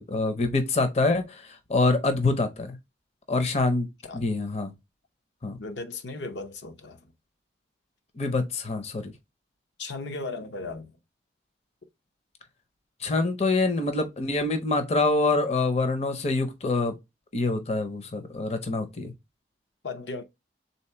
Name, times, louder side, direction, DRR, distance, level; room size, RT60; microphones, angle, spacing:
voice 1, 0.0-2.8 3.3-4.7 5.4-5.6 8.2-9.1 13.0-16.9 17.3-19.1, left 3 dB, 35° left, 0.6 m, -25 dB
voice 2, 5.6-7.1 9.8-10.9 19.8-20.2, left 3 dB, 75° left, 0.6 m, -36 dB
3.6 x 2.8 x 4.4 m
head